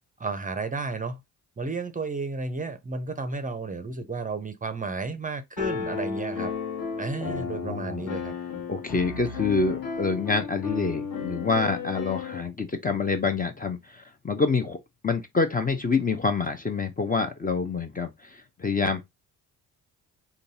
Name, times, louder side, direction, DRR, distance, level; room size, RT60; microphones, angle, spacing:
voice 1, 0.2-1.2 1.6-6.5 7.0-8.3, right 3 dB, 20° right, 0.6 m, -32 dB
Piano, 5.6-12.4, left 6 dB, 50° left, 1.2 m, -33 dB
voice 2, 7.2-8.0 8.7-14.8 15.0-19.0, left 4 dB, 20° left, 0.5 m, -27 dB
3.8 x 2.3 x 2.6 m
hypercardioid pair, 50°, 43 cm